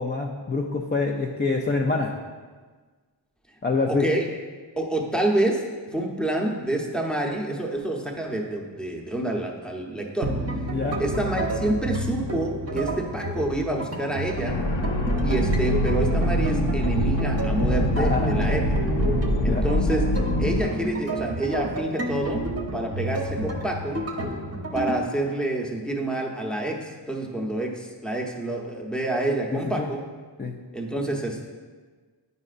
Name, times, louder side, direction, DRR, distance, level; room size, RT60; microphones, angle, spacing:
voice 1, 0.0-2.1 3.6-4.1 10.7-11.0 18.0-18.4 19.5-19.6 29.8-29.9 30.4-30.5, left 3 dB, 25° left, 0 dB, 0.5 m, -25 dB
voice 2, 3.9-4.2 4.8-10.3 11.0-14.6 15.2-18.6 19.4-20.0 20.4-22.4 22.7-24.0 24.7-30.0 30.7-31.5, right 1 dB, ahead, 0 dB, 0.9 m, -28 dB
sound 1, 10.2-25.0, right 1 dB, 35° right, 0.8 m, -30 dB
sound 2, 14.4-20.6, left 1 dB, 65° left, 0.9 m, -24 dB
9.2 x 5.4 x 2.5 m, 1.4 s
wide cardioid pair, 75°, 44 cm